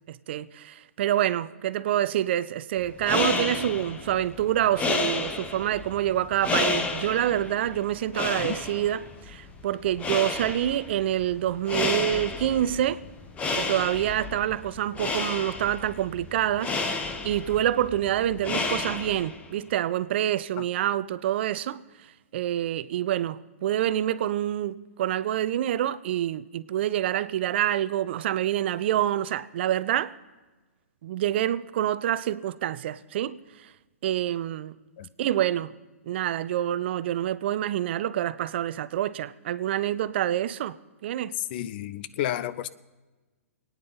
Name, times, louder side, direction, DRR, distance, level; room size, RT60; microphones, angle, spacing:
voice 1, 0.1-13.0 13.6-21.8 22.3-30.1 31.0-33.7 34.0-34.7 35.2-35.7 36.1-40.7 41.0-41.3, right 12 dB, 50° right, 0.6 m, -27 dB
sound 1, 2.8-19.5, left 3 dB, 15° left, 1.1 m, -31 dB
voice 2, 41.5-42.7, left 12 dB, 45° left, 0.6 m, -31 dB
27.0 x 9.6 x 4.0 m
figure-of-eight pair, 115°, 8 cm